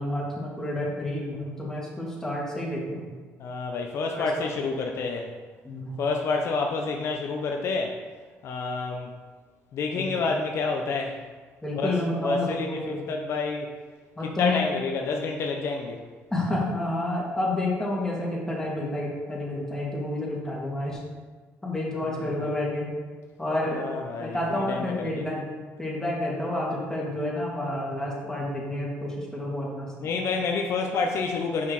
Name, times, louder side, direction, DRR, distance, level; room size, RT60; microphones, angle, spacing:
voice 1, 0.0-3.1 4.1-4.5 5.6-6.0 9.9-10.1 11.6-13.0 14.2-14.6 16.3-21.0 21.6-22.9 23.4-23.9 24.2-25.5 25.8-30.1, left 1 dB, 10° left, -4 dB, 2.4 m, -29 dB
voice 2, 3.4-5.3 6.0-8.0 8.4-9.1 9.7-11.2 11.8-11.9 12.2-13.7 14.4-16.0 22.1-22.5 23.6-25.2 30.0-31.7, left 4 dB, 60° left, 2 dB, 0.7 m, -29 dB
6.3 x 5.6 x 4.8 m, 1.4 s
cardioid pair, 90°, 5 cm